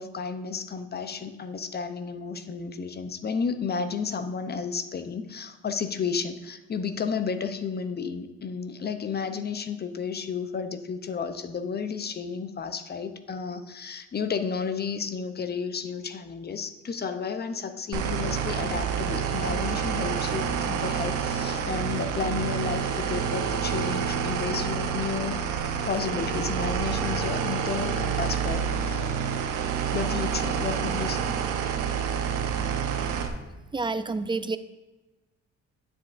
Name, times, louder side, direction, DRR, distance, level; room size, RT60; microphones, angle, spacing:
voice 1, 0.0-25.4 25.8-29.0 29.9-31.3, left 5 dB, 35° left, 10 dB, 0.6 m, -32 dB
sound 1, 17.9-33.3, right 7 dB, 90° right, 0.8 m, -28 dB
voice 2, 33.7-34.6, right 3 dB, 15° right, 12 dB, 0.4 m, -28 dB
9.7 x 7.4 x 2.5 m, 1.1 s
cardioid pair, 90°, 30 cm